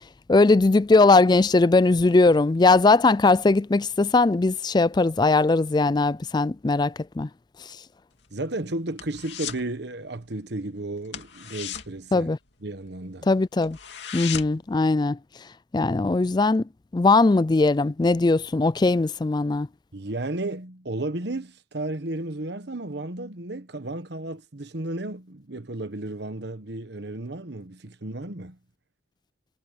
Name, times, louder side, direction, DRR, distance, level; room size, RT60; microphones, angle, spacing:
voice 1, 0.3-7.3 12.1-12.4 13.3-13.8 14.1-15.2 15.7-16.6 16.9-19.7, left 3 dB, 25° left, 0.4 m, -19 dB
sound 1, 8.1-9.7 10.0-10.3 10.5-10.7 11.0-12.9 13.3-13.4 13.6-14.7 15.1-15.2, left 9 dB, 65° left, 2.7 m, -36 dB
voice 2, 8.3-12.3 12.6-13.3 19.9-28.6, right 2 dB, 60° right, 1.2 m, -33 dB
head